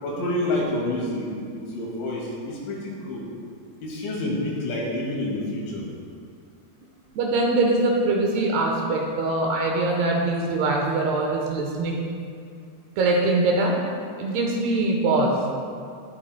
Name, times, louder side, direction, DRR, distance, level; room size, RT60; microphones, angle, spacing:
voice 1, 0.0-3.3 3.8-5.9, left 1 dB, 85° left, -3 dB, 4.6 m, -28 dB
voice 2, 7.1-12.1 13.0-13.8 14.2-15.4, right 2 dB, 70° right, -1 dB, 2.8 m, -23 dB
19.0 x 9.3 x 2.2 m, 2.3 s
omnidirectional pair, 5.3 m